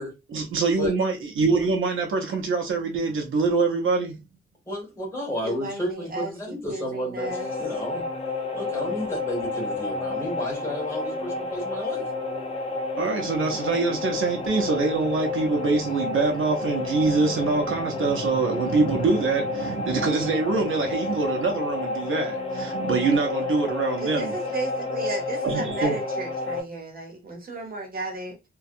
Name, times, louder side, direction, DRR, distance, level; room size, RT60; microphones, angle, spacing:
voice 1, 0.3-4.2 13.0-24.3 25.4-26.0, right 4 dB, 75° right, 0.5 m, -24 dB
voice 2, 1.4-1.7 4.7-8.0 8.5-12.0, equal, 15° left, 1.5 m, -32 dB
voice 3, 5.4-7.5 22.8-22.9 24.0-28.4, right 2 dB, 45° right, 0.8 m, -34 dB
sound 1, 7.2-26.6, left 3 dB, 30° left, 0.4 m, -30 dB
2.6 x 2.2 x 2.4 m
wide cardioid pair, 175°, 21 cm